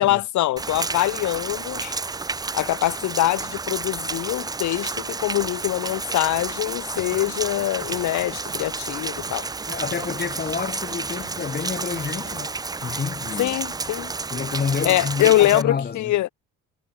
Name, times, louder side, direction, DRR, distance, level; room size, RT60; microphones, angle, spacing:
voice 1, 0.0-2.0 2.5-9.5 13.4-14.1 14.8-16.3, left 15 dB, 70° left, 0.8 m, -23 dB
Rain, 0.6-15.6, right 4 dB, 15° right, 0.4 m, -31 dB
sound 1, 6.9-12.4, right 7 dB, 50° right, 5.1 m, -47 dB
voice 2, 9.7-13.5 14.3-16.1, left 6 dB, 30° left, 1.2 m, -29 dB
cardioid pair, 90°, 30 cm